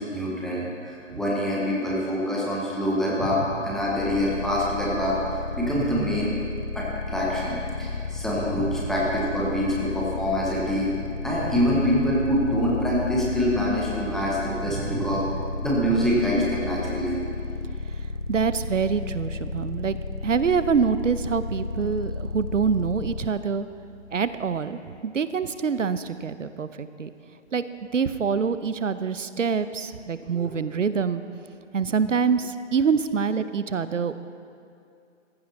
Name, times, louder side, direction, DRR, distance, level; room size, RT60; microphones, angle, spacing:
voice 1, 0.0-6.3 6.7-10.9 11.2-15.3 15.6-17.2 30.3-30.5, equal, ahead, -6 dB, 0.7 m, -25 dB
sound 1, 4.0-23.3, left 3 dB, 70° left, 1.0 m, -33 dB
sound 2, 7.9-24.6, left 4 dB, 50° left, 2.1 m, -42 dB
voice 2, 14.8-15.2 18.3-20.0 20.2-23.7 24.1-27.1 27.5-27.7 27.9-31.2 31.7-34.1, right 6 dB, 80° right, 13 dB, 0.7 m, -25 dB
15.0 x 15.0 x 3.2 m, 2.4 s
figure-of-eight pair, 140°, 37 cm